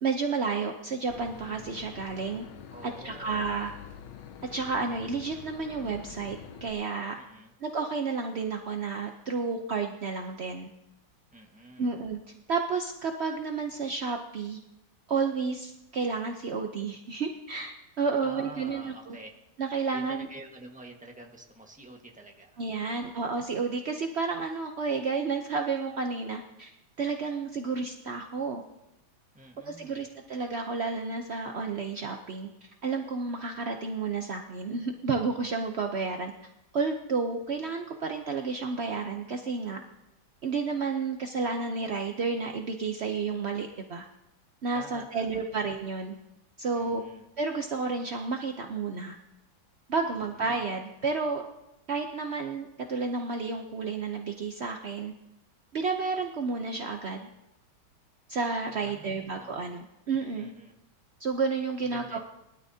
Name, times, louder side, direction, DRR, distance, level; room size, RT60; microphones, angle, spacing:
voice 1, 0.0-2.4 2.8-3.7 4.5-7.2 7.6-10.7 11.8-12.2 12.5-14.6 15.1-19.2 19.6-20.3 22.6-26.7 27.0-28.6 29.6-36.3 36.7-39.8 40.4-44.1 44.6-46.1 46.6-47.0 47.4-49.2 49.9-51.5 51.9-55.1 55.7-57.3 58.3-60.5 61.2-62.2, right 4 dB, 70° right, 4 dB, 0.6 m, -31 dB
Boat Water vehicle / Engine, 1.1-6.7, left 8 dB, 85° left, 1.7 m, -46 dB
voice 2, 2.7-3.3 7.1-7.5 11.3-11.9 18.2-19.3 19.9-22.6 22.8-23.1 29.3-30.1 44.7-45.6 46.7-47.2 50.5-50.7 58.8-59.6 60.4-60.7 61.8-62.2, right 2 dB, 5° right, 1 dB, 1.1 m, -48 dB
20.5 x 12.5 x 2.8 m, 0.88 s
omnidirectional pair, 2.2 m